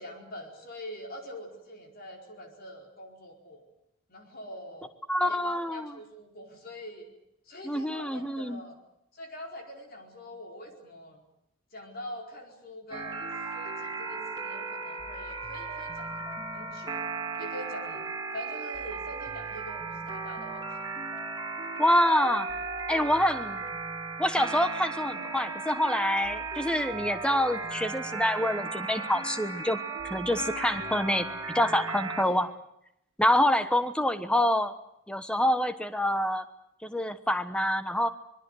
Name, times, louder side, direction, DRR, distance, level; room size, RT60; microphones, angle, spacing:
voice 1, 0.0-3.6 4.1-4.9 5.3-7.0 7.4-8.8 9.1-11.2 11.7-17.0 17.4-18.1 18.3-20.9 23.3-23.4 32.2-32.4, left 1 dB, 45° left, 2 dB, 4.6 m, -44 dB
voice 2, 5.1-5.9 7.6-8.6 21.8-22.5 22.9-23.6 24.2-29.8 30.0-31.3 31.5-32.5 33.2-34.7 35.1-36.4 36.8-38.1, left 1 dB, 5° left, 10 dB, 1.2 m, -26 dB
sound 1, 12.9-32.2, right 4 dB, 20° right, 3.1 m, -36 dB
24.5 x 22.5 x 8.0 m, 0.79 s
head